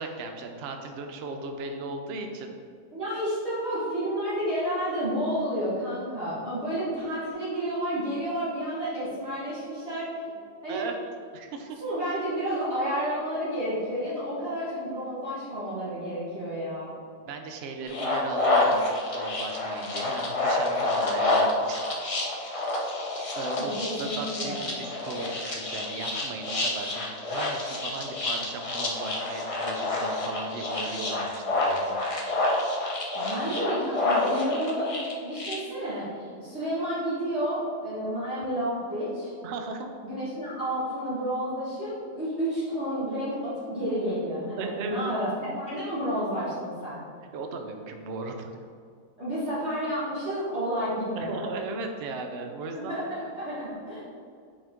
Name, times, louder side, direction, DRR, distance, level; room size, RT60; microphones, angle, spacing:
voice 1, 0.0-2.5 10.7-10.9 11.3-11.8 17.3-21.8 23.4-23.7 24.0-32.0 39.4-39.9 44.6-45.1 47.3-48.6 51.2-53.0, right 3 dB, 65° right, 4 dB, 0.6 m, -36 dB
voice 2, 2.9-10.2 10.6-10.8 11.8-17.0 23.6-24.6 33.1-39.3 40.0-47.0 49.2-51.3 52.7-54.0, equal, 45° right, -11 dB, 1.7 m, -30 dB
sound 1, 17.9-35.5, left 2 dB, 40° left, 0.5 m, -28 dB
5.8 x 4.4 x 3.6 m, 2.2 s
omnidirectional pair, 1.7 m